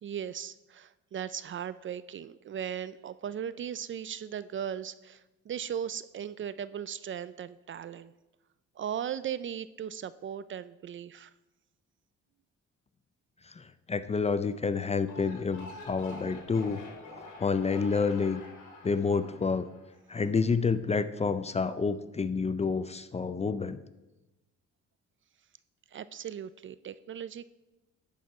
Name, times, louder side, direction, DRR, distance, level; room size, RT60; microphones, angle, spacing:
voice 1, 0.0-8.1 8.8-11.3 25.9-27.4, right 9 dB, 40° right, 16 dB, 0.4 m, -37 dB
voice 2, 13.6-16.8 17.4-18.4 18.8-19.6 20.1-23.8, left 5 dB, 20° left, 13 dB, 0.4 m, -29 dB
sound 1, 14.9-20.3, left 2 dB, 85° left, 2.1 m, -47 dB
10.0 x 4.7 x 5.4 m, 1.0 s
cardioid pair, 90°, 30 cm